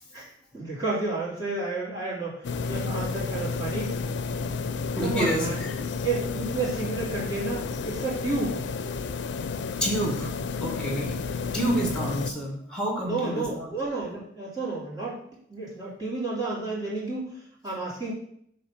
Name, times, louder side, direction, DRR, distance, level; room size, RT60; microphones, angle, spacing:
voice 1, 0.1-3.9 5.0-5.6 6.0-8.6 13.0-15.2 15.5-17.4 17.6-18.1, right 3 dB, 20° right, -7 dB, 2.6 m, -31 dB
sound 1, 2.4-12.3, left 4 dB, 75° left, 0.4 m, -31 dB
voice 2, 5.0-5.7 9.8-10.3 10.6-11.2 11.5-13.7, equal, 5° left, 1 dB, 1.5 m, -28 dB
6.9 x 3.3 x 5.7 m, 0.68 s
head